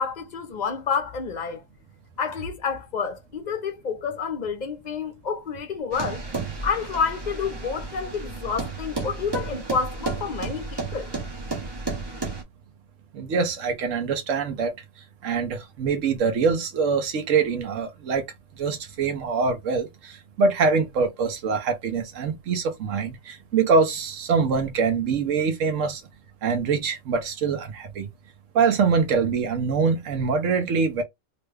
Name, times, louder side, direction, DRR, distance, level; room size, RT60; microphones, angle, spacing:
voice 1, 0.0-1.6 2.2-6.2 6.6-11.1, left 6 dB, 45° left, 0.7 m, -29 dB
sound 1, 5.9-12.4, right 3 dB, 25° right, 0.7 m, -32 dB
voice 2, 13.1-14.7 15.2-18.2 18.6-26.0 26.4-28.1 28.5-31.0, right 5 dB, 85° right, 1.2 m, -24 dB
3.1 x 2.2 x 3.3 m
omnidirectional pair, 1.3 m